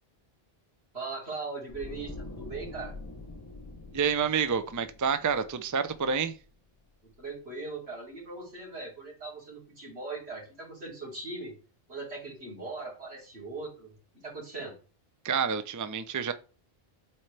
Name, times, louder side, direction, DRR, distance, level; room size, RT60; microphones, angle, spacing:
voice 1, 0.9-2.9 7.2-11.5 11.9-13.9 14.2-14.7, right 3 dB, 85° right, 3.4 m, -39 dB
sound 1, 1.7-6.8 7.1-7.3, left 2 dB, 20° left, 0.7 m, -45 dB
voice 2, 3.9-6.3 15.2-16.3, right 6 dB, 30° right, 0.4 m, -28 dB
7.6 x 4.4 x 3.3 m
omnidirectional pair, 1.0 m